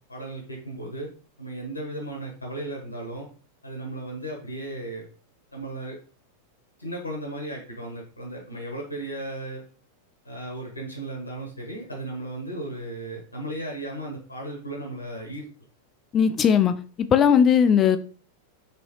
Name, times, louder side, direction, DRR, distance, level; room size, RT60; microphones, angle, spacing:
voice 1, 0.1-1.1 1.4-3.3 3.6-5.1 5.5-6.0 6.8-9.6 10.2-15.5, right 1 dB, 85° left, 1 dB, 0.8 m, -35 dB
voice 2, 16.1-18.0, left 7 dB, 25° left, 11 dB, 0.3 m, -19 dB
3.8 x 2.8 x 2.9 m, 0.41 s
figure-of-eight pair, 90°, 0 cm